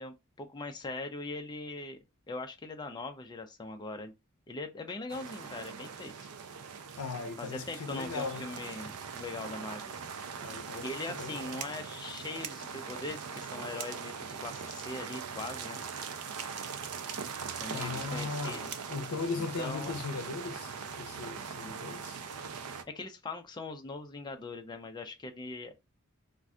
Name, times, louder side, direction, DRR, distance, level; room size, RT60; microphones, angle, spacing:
voice 1, 0.0-2.0 2.3-4.1 4.5-6.1 7.4-10.0 10.8-15.8 17.6-18.7 19.6-19.9 22.9-25.7, left 3 dB, 20° left, 0.3 m, -41 dB
sound 1, 5.1-22.8, right 6 dB, 85° right, 0.4 m, -41 dB
voice 2, 7.0-8.5 10.4-11.6 17.7-22.2, left 4 dB, 80° left, 0.5 m, -38 dB
2.4 x 2.2 x 3.6 m
head